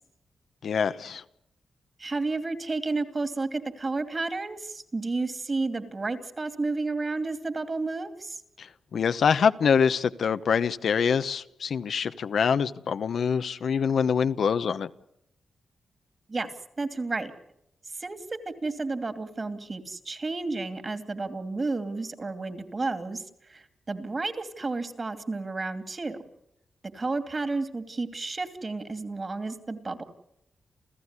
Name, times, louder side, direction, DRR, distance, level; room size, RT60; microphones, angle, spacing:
voice 1, 0.6-1.2 8.6-14.9, left 6 dB, 75° left, 12 dB, 0.9 m, -25 dB
voice 2, 2.0-8.4 16.3-16.5 16.8-17.3 17.9-18.2 18.5-26.2 26.9-30.0, right 3 dB, 35° right, 9 dB, 2.7 m, -31 dB
29.5 x 15.0 x 9.8 m, 0.79 s
cardioid pair, 75°, 0 cm